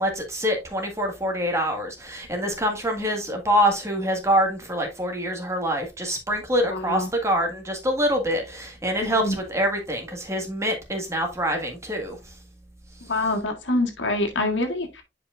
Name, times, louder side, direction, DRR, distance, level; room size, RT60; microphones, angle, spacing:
voice 1, 0.0-12.2, equal, 15° right, 1.7 m, -25 dB
voice 2, 6.7-7.1 9.0-9.4 13.1-15.0, left 2 dB, 90° left, 1.8 m, -25 dB
10.0 x 5.1 x 2.5 m
head